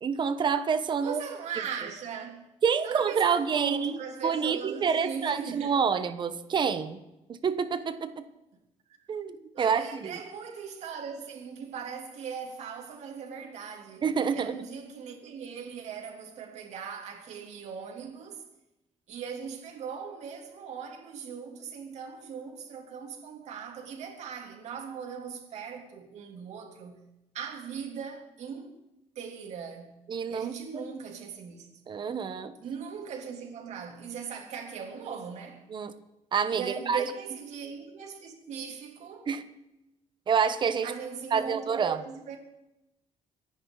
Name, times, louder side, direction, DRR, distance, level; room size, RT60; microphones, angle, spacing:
voice 1, 0.0-1.2 2.6-3.9 4.2-7.0 7.3-8.2 9.1-10.2 14.0-14.6 30.1-30.5 31.9-32.5 35.7-35.9 36.3-37.0 39.3-39.4 40.3-40.9 41.3-42.0, right 6 dB, 40° right, 1.2 m, -27 dB
voice 2, 1.0-2.5 2.8-5.8 9.5-14.0 14.3-18.4 19.1-27.0 27.3-28.8 29.1-30.0 30.3-31.7 32.6-35.6 36.5-39.3 40.8-42.4, right 6 dB, 70° right, 3.3 m, -39 dB
25.5 x 10.5 x 4.1 m
cardioid pair, 135°, 12 cm